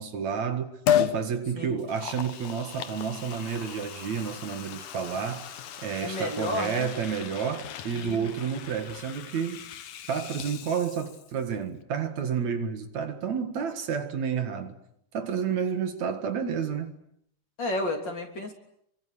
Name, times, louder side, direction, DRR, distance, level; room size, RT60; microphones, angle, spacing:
voice 1, 0.0-5.5 5.8-9.6 10.1-14.8 15.1-16.9, right 7 dB, 65° right, 3.0 m, -30 dB
Liquid, 0.9-1.2 1.8-11.4 11.7-11.8, left 10 dB, 75° left, 2.8 m, -34 dB
voice 2, 6.0-6.9 7.9-8.3 17.6-18.5, left 1 dB, 35° left, 3.8 m, -32 dB
28.5 x 23.5 x 8.4 m
omnidirectional pair, 3.6 m